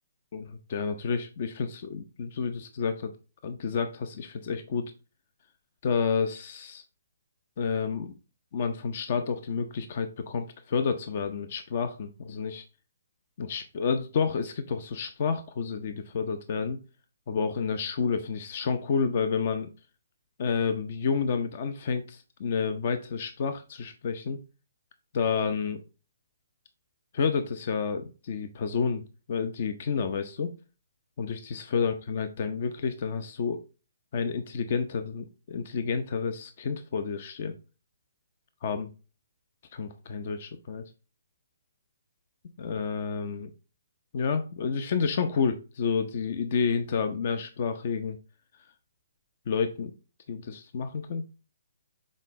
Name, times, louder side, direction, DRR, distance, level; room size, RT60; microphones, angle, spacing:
voice 1, 0.3-3.1 3.4-4.9 5.8-6.8 7.6-8.2 8.5-12.6 13.4-16.8 17.3-19.7 20.4-24.4 25.1-25.8 27.1-29.0 29.3-30.5 31.2-33.6 34.1-37.5 38.6-38.9 39.7-40.8 42.6-43.5 44.1-48.2 49.5-49.9 50.3-51.2, left 5 dB, 45° left, 9 dB, 0.7 m, -30 dB
6.5 x 4.1 x 3.7 m, 0.33 s
hypercardioid pair, 150°, 0 cm